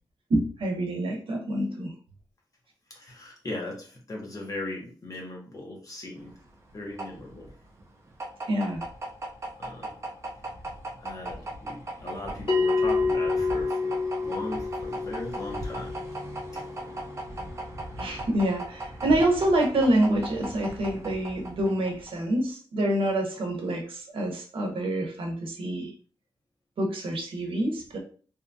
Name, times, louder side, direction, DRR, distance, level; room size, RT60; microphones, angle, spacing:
voice 1, 0.3-1.9 8.5-8.8 18.0-25.9 26.8-28.0, right 1 dB, 85° right, 2 dB, 0.7 m, -27 dB
voice 2, 2.9-6.3 6.7-7.5 9.6-10.0 11.0-15.9 16.5-16.6, left 2 dB, 40° left, -1 dB, 0.8 m, -38 dB
sound 1, 6.2-22.2, right 1 dB, 35° right, 0.5 m, -38 dB
Bell, 12.5-17.5, left 4 dB, 70° left, 0.8 m, -28 dB
2.7 x 2.3 x 2.6 m, 0.41 s
wide cardioid pair, 130°, 9 cm